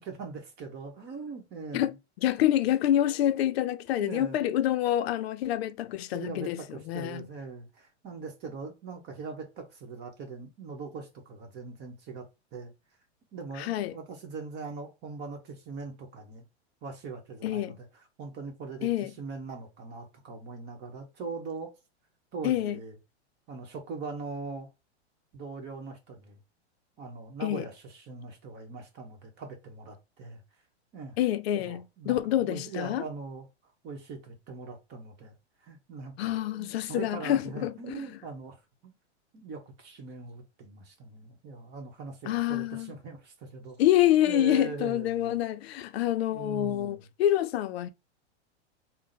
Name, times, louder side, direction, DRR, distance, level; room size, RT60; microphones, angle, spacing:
voice 1, 0.0-1.9 4.0-4.4 6.1-12.3 12.5-12.7 13.3-16.4 16.8-17.9 18.2-21.7 22.3-23.0 23.5-24.7 25.3-26.4 27.0-30.4 30.9-31.2 31.5-33.5 33.8-35.3 35.6-38.9 39.3-43.9 44.2-45.4 46.3-47.0, right 4 dB, 30° right, 1.1 m, -41 dB
voice 2, 1.7-7.3 13.6-14.0 17.4-17.8 18.8-19.1 22.4-22.8 27.4-27.7 31.2-33.0 36.2-38.1 42.2-42.9 43.8-47.9, left 12 dB, 60° left, 0.5 m, -27 dB
3.6 x 2.1 x 3.9 m
hypercardioid pair, 135°, 35 cm